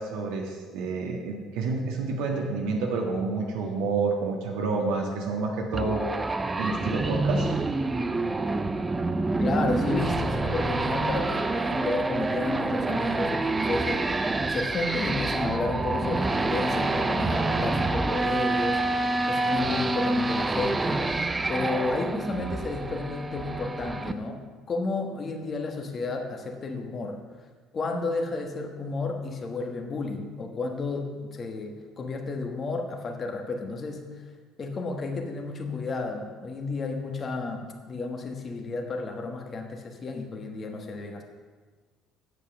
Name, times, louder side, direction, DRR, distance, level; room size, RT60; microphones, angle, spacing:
voice 1, 0.0-6.0 6.6-7.6, right 4 dB, 85° right, 0 dB, 1.5 m, -29 dB
sound 1, 5.7-24.1, right 2 dB, 15° right, 0.5 m, -27 dB
voice 2, 9.4-21.0 21.5-24.4 24.7-27.2 27.7-34.3 34.6-41.2, left 3 dB, 30° left, 3 dB, 1.3 m, -32 dB
8.3 x 7.4 x 7.1 m, 1.5 s
cardioid pair, 135°, 0 cm